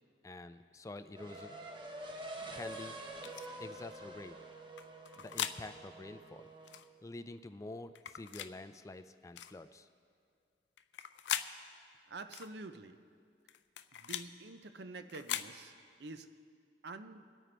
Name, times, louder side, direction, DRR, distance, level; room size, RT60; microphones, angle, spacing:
voice 1, 0.2-1.6 2.5-2.9 3.6-4.4 5.2-6.5 7.0-9.9, left 2 dB, 20° left, 0.3 m, -47 dB
sound 1, 1.1-6.8, right 1 dB, 25° right, 1.0 m, -47 dB
sound 2, 3.2-3.5 4.8-5.6 6.7-6.9 8.0-8.5 9.4-9.6 10.8-11.5 12.3-12.5 13.5-14.3 15.1-15.5, left 10 dB, 90° left, 0.4 m, -40 dB
voice 2, 12.1-13.2 13.9-17.3, right 3 dB, 65° right, 0.6 m, -48 dB
22.5 x 8.9 x 3.3 m
head